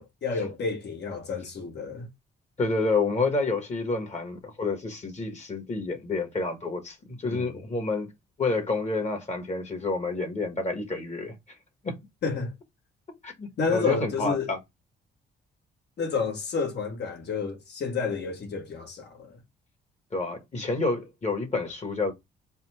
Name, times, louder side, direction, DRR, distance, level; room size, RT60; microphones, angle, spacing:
voice 1, 0.0-2.1 7.2-7.5 12.2-12.5 13.6-14.5 16.0-19.3, left 5 dB, 60° left, 1.5 m, -30 dB
voice 2, 2.6-8.1 8.4-11.3 11.8-12.0 13.2-14.6 20.1-22.1, left 3 dB, 35° left, 1.5 m, -29 dB
4.2 x 2.3 x 4.2 m
cardioid pair, 90°, 20 cm